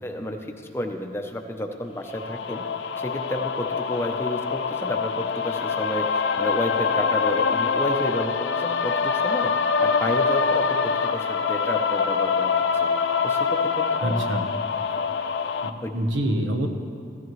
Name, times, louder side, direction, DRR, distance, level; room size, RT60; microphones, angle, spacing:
voice 1, 0.0-2.6 3.0-6.1 6.4-9.5 9.8-12.5 12.8-12.9 13.2-14.2 15.8-15.9, left 1 dB, 15° left, 3 dB, 0.7 m, -31 dB
sound 1, 2.1-15.7, left 5 dB, 75° left, 0.5 m, -25 dB
voice 2, 14.0-14.5 15.6-16.7, right 1 dB, 85° right, 4 dB, 1.0 m, -26 dB
15.0 x 13.5 x 3.1 m, 2.5 s
head